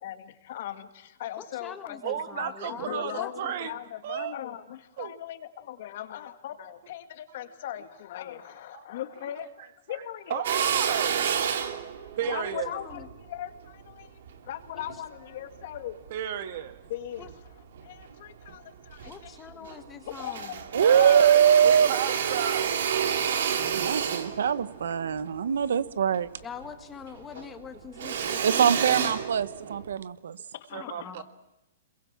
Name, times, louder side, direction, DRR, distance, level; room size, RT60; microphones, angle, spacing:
voice 1, 0.0-9.5 9.9-10.4 10.9-11.0 12.0-16.0 16.9-21.2 25.1-25.3 27.3-27.5 30.7-31.2, left 11 dB, 45° left, 9 dB, 2.0 m, -39 dB
voice 2, 1.4-3.5 12.2-13.1 14.7-14.8 17.2-17.3 19.1-20.5 26.4-29.1 30.7-31.2, left 7 dB, 10° left, 8 dB, 1.6 m, -43 dB
voice 3, 2.0-3.7 4.0-4.4 5.0-5.1 8.7-8.9 10.3-11.6 12.2-12.7 16.1-16.8 20.8-22.7 30.7-31.2, right 10 dB, 45° right, 10 dB, 1.8 m, -33 dB
Drill, 10.4-15.0 15.5-16.7 17.2-18.1 18.5-18.6 18.8-19.8 20.1-26.8 27.1-29.9, right 7 dB, 60° right, 2.7 m, -30 dB
voice 4, 20.7-21.9 23.7-26.3 28.4-30.4, right 8 dB, 80° right, 15 dB, 1.2 m, -22 dB
27.0 x 22.5 x 7.3 m, 0.93 s
hypercardioid pair, 170°, 0 cm